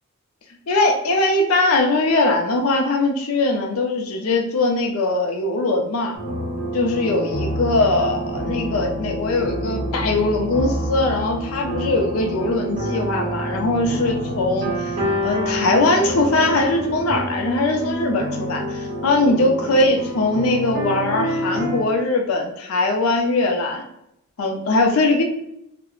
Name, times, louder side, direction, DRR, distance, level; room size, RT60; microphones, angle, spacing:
voice 1, 0.7-6.2 6.7-14.9 15.2-23.9 24.4-25.2, left 2 dB, 85° left, 3 dB, 0.4 m, -21 dB
sound 1, 6.1-21.8, equal, 50° right, 0.8 m, -27 dB
2.3 x 2.0 x 3.0 m, 0.78 s
head